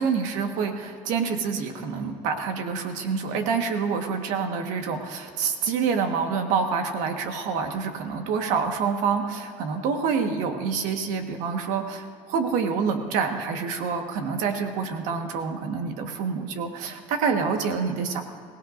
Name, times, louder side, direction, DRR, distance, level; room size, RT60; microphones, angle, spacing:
voice 1, 0.0-18.2, right 5 dB, 75° right, 5 dB, 1.5 m, -27 dB
23.0 x 17.5 x 2.6 m, 2.4 s
cardioid pair, 175°, 13 cm